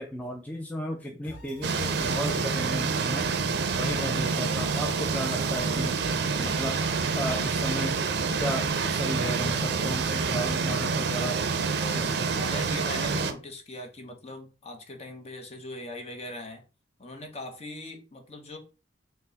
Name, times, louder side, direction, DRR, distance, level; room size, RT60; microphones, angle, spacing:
voice 1, 0.0-3.3 3.8-6.0 6.4-6.8 7.1-8.0 8.4-11.4 11.9-12.2, equal, 10° left, 0.3 m, -34 dB
sound 1, 1.2-10.5, equal, 75° left, 1.0 m, -46 dB
sound 2, 1.6-13.3, right 5 dB, 60° right, 0.4 m, -27 dB
voice 2, 12.3-16.6 17.0-18.6, left 2 dB, 35° left, 0.8 m, -40 dB
4.3 x 2.0 x 3.9 m
head